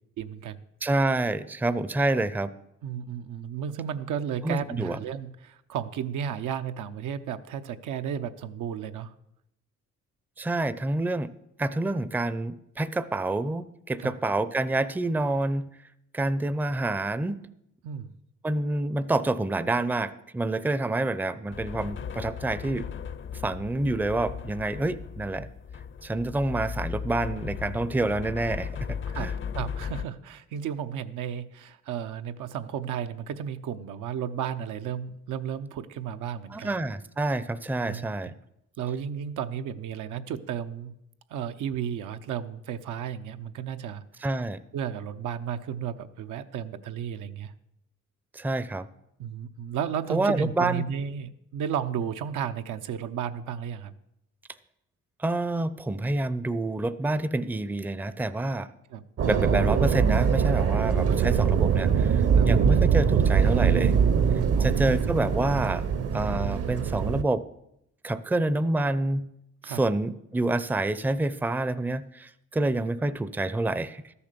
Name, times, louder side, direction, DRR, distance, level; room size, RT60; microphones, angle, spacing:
voice 1, 0.2-0.6 2.8-9.1 14.0-14.1 17.8-18.1 29.1-36.7 37.8-38.0 38.8-40.9 41.3-44.3 44.7-47.5 49.2-53.9 58.9-59.0 61.1-61.2 62.3-62.5 64.5-64.9 69.6-69.8, right 8 dB, 85° right, 9 dB, 0.7 m, -33 dB
voice 2, 0.8-2.5 4.4-5.0 10.4-11.3 11.6-15.7 16.1-17.4 18.4-22.9 23.4-25.5 26.0-29.3 36.5-38.3 44.2-44.6 48.3-48.9 50.1-50.8 55.2-58.7 59.3-63.9 64.6-65.8 66.1-67.5 68.0-69.3 69.6-74.1, right 2 dB, 5° right, 15 dB, 0.5 m, -27 dB
sound 1, 21.5-30.1, left 7 dB, 40° left, 0.6 m, -36 dB
sound 2, 59.2-67.2, right 7 dB, 50° right, 0.8 m, -23 dB
13.0 x 7.0 x 6.7 m, 0.80 s
cardioid pair, 90°, 30 cm